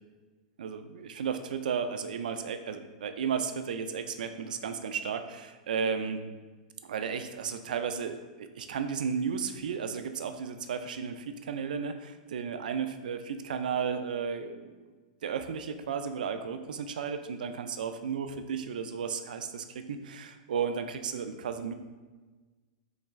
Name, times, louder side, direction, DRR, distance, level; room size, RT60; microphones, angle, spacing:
voice 1, 0.6-6.2 6.8-14.7 15.2-21.7, right 6 dB, 80° right, 8 dB, 0.3 m, -34 dB
3.9 x 3.4 x 3.1 m, 1.3 s
hypercardioid pair, 125°, 4 cm